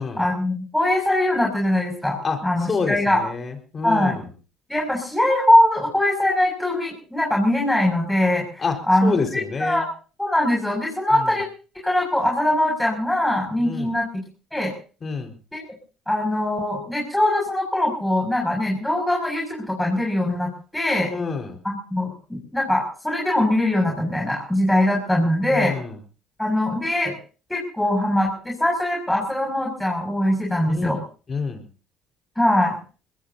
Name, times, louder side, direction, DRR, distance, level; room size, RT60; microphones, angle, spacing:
voice 1, 0.2-3.2 3.8-4.1 4.7-9.9 10.2-11.4 11.8-14.1 14.5-14.7 15.5-15.6 16.1-21.1 21.6-25.7 26.4-27.1 27.5-31.0 32.4-32.8, left 1 dB, 5° left, -1 dB, 6.6 m, -22 dB
voice 2, 2.2-4.3 8.6-9.8 11.1-11.3 13.6-13.9 15.0-15.3 21.0-21.6 25.5-26.0 30.7-31.0 31.3-31.6, left 4 dB, 40° left, 4 dB, 4.6 m, -28 dB
22.5 x 20.5 x 2.8 m, 0.38 s
supercardioid pair, 70°, 0 cm